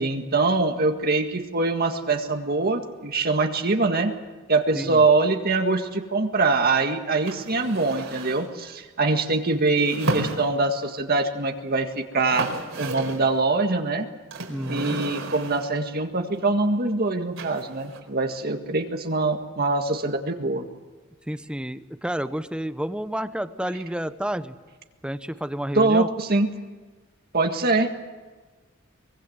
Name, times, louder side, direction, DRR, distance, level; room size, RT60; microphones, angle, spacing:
voice 1, 0.0-4.1 4.5-12.5 12.8-14.1 14.7-20.7 25.7-26.5 27.3-27.9, right 3 dB, 50° right, 5 dB, 1.8 m, -23 dB
sound 1, 7.3-8.5 9.8-10.9 11.8-11.9 12.1-13.3 14.3-15.8 17.4-18.0, right 2 dB, 75° right, 4.6 m, -32 dB
voice 2, 14.5-15.0 21.3-24.6 25.0-26.1, equal, 5° right, 12 dB, 0.9 m, -30 dB
24.0 x 22.0 x 7.9 m, 1.3 s
head